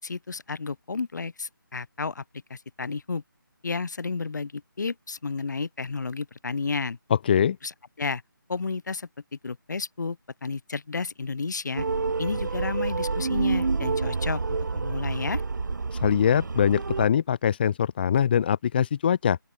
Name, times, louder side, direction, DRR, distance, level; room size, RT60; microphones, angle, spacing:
voice 1, 0.0-2.2 2.5-3.2 3.6-7.0 7.6-7.7 8.0-8.2 8.5-9.1 9.4-11.8 12.2-14.4 14.7-15.4, left 4 dB, 55° left, 6.5 m, -32 dB
voice 2, 7.1-7.6 15.9-19.4, left 8 dB, 25° left, 1.5 m, -23 dB
sound 1, 11.8-17.1, right 4 dB, 55° right, 3.3 m, -28 dB
open air
figure-of-eight pair, 165°, 12 cm